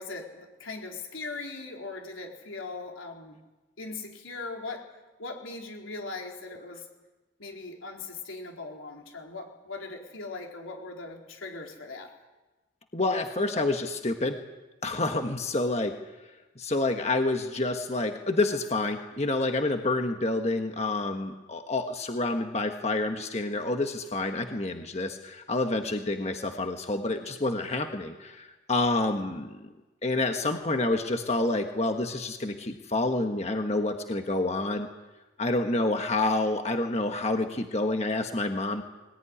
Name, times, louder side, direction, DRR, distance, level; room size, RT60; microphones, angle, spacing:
voice 1, 0.0-3.4 3.8-4.9 5.2-6.9 7.4-12.1, left 3 dB, 90° left, 1 dB, 4.2 m, -39 dB
voice 2, 12.9-14.4 14.8-15.9 16.6-29.6 30.0-34.9 35.4-38.8, left 2 dB, 35° left, 5 dB, 1.3 m, -28 dB
21.5 x 19.5 x 10.0 m, 1.1 s
head